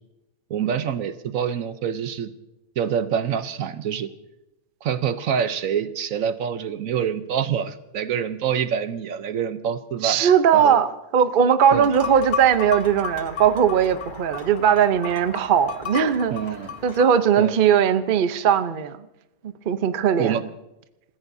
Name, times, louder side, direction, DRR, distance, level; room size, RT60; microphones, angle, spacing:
voice 1, 0.5-2.3 2.8-4.1 4.8-10.8 11.7-11.9 16.3-16.7 17.4-17.6 20.2-20.4, right 8 dB, 70° right, 11 dB, 1.1 m, -26 dB
voice 2, 10.0-16.3 16.8-19.1 19.4-20.4, right 8 dB, 45° right, 11 dB, 0.7 m, -19 dB
sound 1, 11.7-17.1, left 7 dB, 40° left, 0.9 m, -34 dB
28.5 x 15.0 x 2.7 m, 0.92 s
omnidirectional pair, 1.6 m